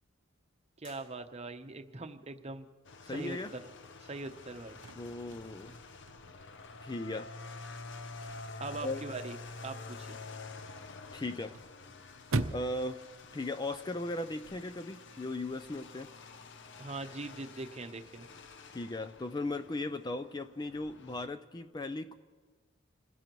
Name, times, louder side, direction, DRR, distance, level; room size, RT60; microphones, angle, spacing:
sound 1, 0.8-1.8, left 1 dB, 40° left, 3.3 m, -60 dB
voice 1, 0.8-2.7 3.1-3.6 4.1-4.8 8.6-9.4 9.6-10.2 16.8-18.3, right 2 dB, 30° right, 7 dB, 0.8 m, -41 dB
sound 2, 2.8-21.3, left 3 dB, 60° left, 0.7 m, -49 dB
voice 2, 3.0-3.5 5.0-5.8 6.8-7.3 8.8-9.0 11.1-11.6 12.5-13.0 13.3-16.1 18.7-22.1, left 2 dB, 20° left, 10 dB, 0.4 m, -37 dB
Chirp tweet / Car / Slam, 4.5-14.5, right 2 dB, 80° right, 0.8 m, -43 dB
28.0 x 16.5 x 3.1 m, 1.5 s
head